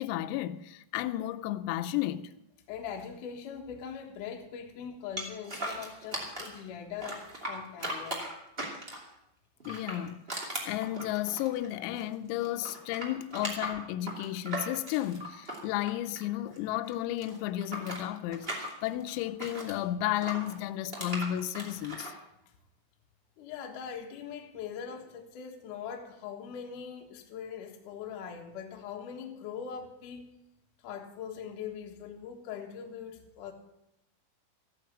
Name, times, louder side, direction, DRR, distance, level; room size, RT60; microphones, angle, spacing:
voice 1, 0.0-2.3 9.7-22.1, left 13 dB, 85° left, 3.3 m, -33 dB
voice 2, 2.7-8.3 22.4-22.5 23.4-30.3 30.8-33.5, left 7 dB, 65° left, 2.1 m, -41 dB
sound 1, 5.2-6.6 7.0-9.1 9.6-12.1 12.4-16.6 16.8-19.8 20.2-22.1, right 1 dB, 55° right, 0.6 m, -38 dB
14.5 x 9.2 x 7.3 m
omnidirectional pair, 6.0 m